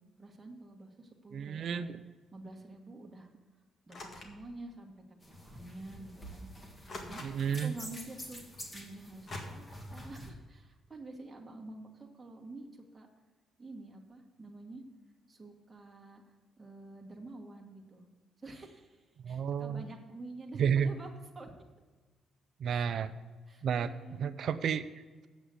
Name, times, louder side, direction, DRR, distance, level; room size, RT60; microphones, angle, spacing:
voice 1, 0.2-1.9 2.3-3.3 3.8-6.5 7.0-7.3 7.5-8.4 8.7-9.7 9.9-13.1 13.6-14.8 15.3-18.0 18.4-21.1 21.3-21.5 22.7-22.9 23.5-24.2, right 2 dB, 20° right, 0 dB, 1.6 m, -48 dB
voice 2, 1.3-2.0 7.2-7.8 19.2-19.8 20.6-20.9 22.6-23.1 23.6-23.9 24.2-25.3, right 7 dB, 65° right, 10 dB, 0.4 m, -32 dB
sound 1, 3.9-4.4 5.5-5.6 6.9-7.6 9.3-9.4, left 2 dB, 45° left, 1.8 m, -45 dB
sound 2, 5.2-10.3, equal, 25° left, 2.0 m, -47 dB
8.2 x 6.1 x 7.9 m, 1.3 s
cardioid pair, 90°, 0 cm